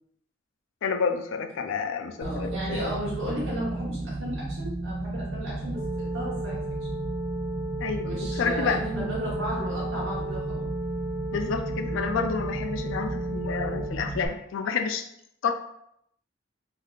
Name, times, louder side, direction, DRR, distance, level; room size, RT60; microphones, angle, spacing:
voice 1, 0.8-2.9 7.8-8.8 11.3-15.1 15.4-15.5, left 5 dB, 75° left, 7 dB, 0.4 m, -29 dB
sound 1, 2.2-14.3, right 2 dB, 60° right, 1.2 m, -33 dB
voice 2, 2.2-6.7 8.0-10.7 12.9-13.0, equal, 85° right, -6 dB, 1.0 m, -34 dB
sound 2, 5.7-13.9, right 1 dB, 35° right, 0.6 m, -36 dB
3.4 x 2.7 x 2.3 m, 0.74 s
head